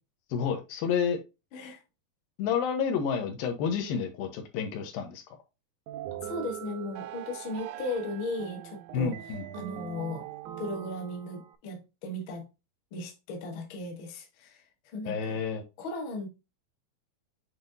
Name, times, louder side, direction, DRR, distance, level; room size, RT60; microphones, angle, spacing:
voice 1, 0.3-1.2 2.4-5.2 8.9-9.4 15.1-15.6, left 6 dB, 80° left, 2.9 m, -30 dB
sound 1, 5.9-11.6, right 10 dB, 80° right, 1.7 m, -41 dB
voice 2, 6.2-9.1 9.5-10.3 10.6-12.4 12.9-15.4 15.8-16.3, left 2 dB, 50° left, 1.6 m, -36 dB
8.5 x 4.2 x 2.7 m
omnidirectional pair, 4.2 m